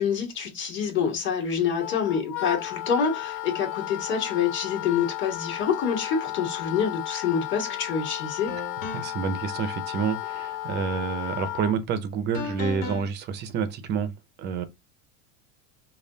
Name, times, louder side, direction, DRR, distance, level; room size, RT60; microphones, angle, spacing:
voice 1, 0.0-8.5, left 7 dB, 30° left, 1.6 m, -27 dB
Wind instrument woodwind instrument, 1.8-11.8, left 15 dB, 50° left, 0.7 m, -34 dB
sound 1, 7.7-7.8 8.5-9.3 12.3-13.1, left 5 dB, 70° left, 1.7 m, -36 dB
voice 2, 8.9-14.1 14.4-14.6, right 6 dB, 30° right, 0.6 m, -28 dB
5.3 x 2.4 x 3.8 m
cardioid pair, 170°, 38 cm